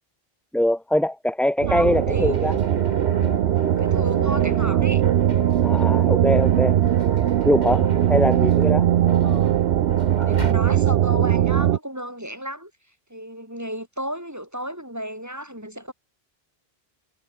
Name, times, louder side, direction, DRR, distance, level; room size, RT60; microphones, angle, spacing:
voice 1, 0.5-2.5 5.6-6.8 7.4-8.9, left 1 dB, ahead, 2.7 m, -22 dB
sound 1, 1.6-11.8, right 11 dB, 85° right, 0.9 m, -20 dB
voice 2, 1.7-2.5 3.8-5.0 8.1-8.3 9.2-9.6 10.2-12.7 13.1-15.9, equal, 15° right, 6.3 m, -33 dB
sound 2, 1.9-10.5, right 1 dB, 45° right, 7.9 m, -34 dB
omnidirectional pair, 1.0 m